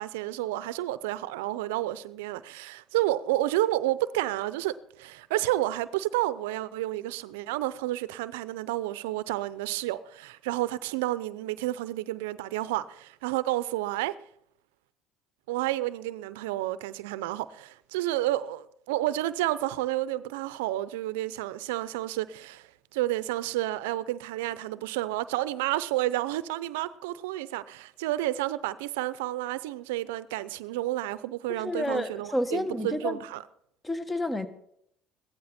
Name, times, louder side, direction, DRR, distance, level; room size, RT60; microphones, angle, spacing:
voice 1, 0.0-14.1 15.5-33.4, right 15 dB, 85° right, 0.6 m, -30 dB
voice 2, 31.5-33.2 33.8-34.5, left 1 dB, 15° left, 1.5 m, -30 dB
16.0 x 13.5 x 4.3 m
supercardioid pair, 75°, 0 cm